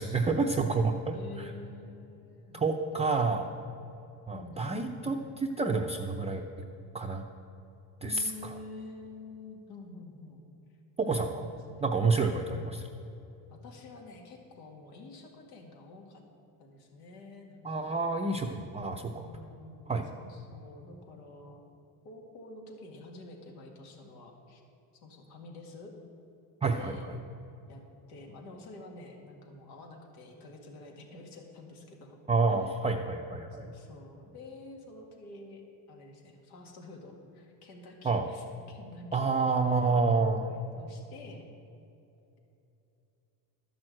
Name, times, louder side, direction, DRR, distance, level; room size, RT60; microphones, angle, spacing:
voice 1, 0.0-1.5 2.5-3.5 4.3-6.4 6.9-7.2 8.0-8.5 11.0-11.5 11.8-12.9 17.6-19.3 19.9-20.1 26.6-27.2 32.3-33.7 38.0-38.3 39.1-40.5, right 4 dB, 15° right, 1 dB, 0.5 m, -29 dB
voice 2, 1.1-3.5 4.3-5.2 8.0-10.5 11.0-11.9 13.5-16.2 16.6-18.0 19.0-21.6 22.0-24.6 24.9-25.9 26.7-27.1 27.7-27.8 28.1-32.2 32.5-32.8 33.5-35.6 35.9-39.9 40.4-41.4, left 2 dB, 85° left, 1 dB, 2.0 m, -48 dB
12.5 x 6.2 x 7.6 m, 2.8 s
supercardioid pair, 110°, 44 cm